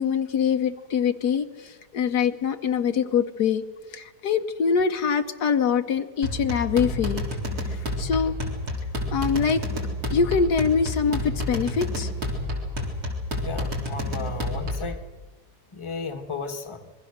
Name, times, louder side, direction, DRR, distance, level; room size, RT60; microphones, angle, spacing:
voice 1, 0.0-3.6 3.9-7.2 7.7-8.3 9.1-9.6 10.1-12.1, left 6 dB, 70° left, 7 dB, 1.4 m, -24 dB
sound 1, 6.2-15.0, left 1 dB, 60° right, 4.2 m, -30 dB
voice 2, 13.3-15.0 15.7-16.9, left 4 dB, 20° left, 5 dB, 1.3 m, -34 dB
26.5 x 22.0 x 6.6 m, 1.4 s
omnidirectional pair, 1.8 m